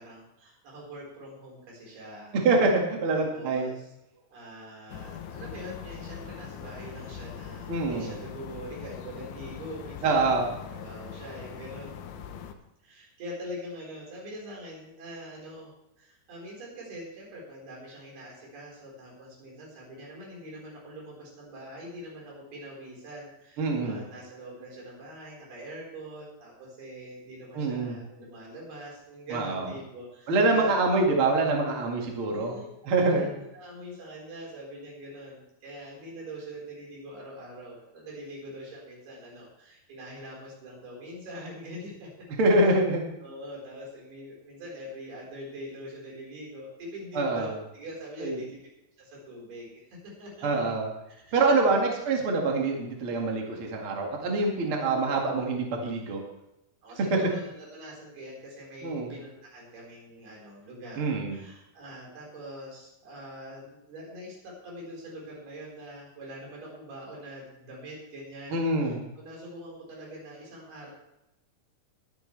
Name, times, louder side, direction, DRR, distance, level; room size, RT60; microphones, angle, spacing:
voice 1, 0.0-2.4 3.1-3.9 4.3-10.4 10.7-12.0 12.8-30.9 32.0-32.7 33.0-42.3 42.6-42.8 43.2-48.6 49.0-50.7 51.1-51.8 54.7-55.4 56.8-70.9, equal, 80° right, -3 dB, 6.6 m, -43 dB
voice 2, 2.3-3.7 7.7-8.1 10.0-10.5 23.6-24.0 27.5-28.0 29.3-29.7 30.3-32.5 32.8-33.3 42.4-43.0 47.1-47.5 48.2-48.4 50.4-50.9 51.3-56.2 58.8-59.1 61.0-61.4 68.5-69.0, right 3 dB, 40° right, 0 dB, 2.5 m, -25 dB
sound 1, 4.9-12.5, left 8 dB, 70° left, 2.1 m, -42 dB
21.0 x 9.6 x 3.4 m, 0.88 s
omnidirectional pair, 4.4 m